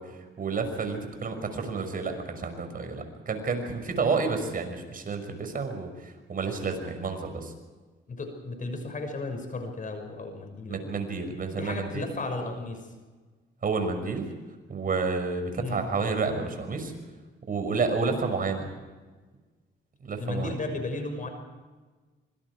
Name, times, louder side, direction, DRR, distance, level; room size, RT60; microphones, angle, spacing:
voice 1, 0.0-7.5 10.7-12.1 13.6-14.3 14.7-16.9 17.5-18.7 20.0-20.5, right 4 dB, 45° right, 6 dB, 6.0 m, -30 dB
voice 2, 8.1-11.0 11.6-12.9 15.6-15.8 20.2-21.3, left 2 dB, 40° left, 6 dB, 6.2 m, -34 dB
26.0 x 25.0 x 4.9 m, 1.3 s
cardioid pair, 90°, 20 cm